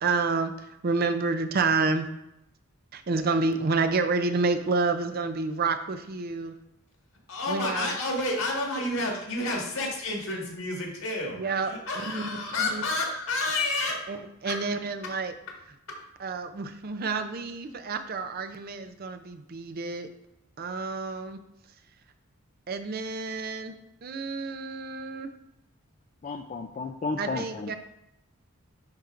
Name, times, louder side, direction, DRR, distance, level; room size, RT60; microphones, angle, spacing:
voice 1, 0.0-2.1 2.9-6.5 7.5-8.0 11.3-11.7 12.1-12.2 12.6-12.8 14.1-15.3 16.2-20.1 20.6-21.4 22.7-23.8 24.0-25.3 27.2-27.8, right 4 dB, 45° right, 8 dB, 0.5 m, -29 dB
voice 2, 7.3-14.1 14.4-14.6 15.9-16.0, left 2 dB, 70° left, -1 dB, 1.8 m, -30 dB
voice 3, 26.2-27.7, left 3 dB, 35° left, 3 dB, 0.3 m, -33 dB
10.5 x 4.4 x 2.5 m, 0.82 s
head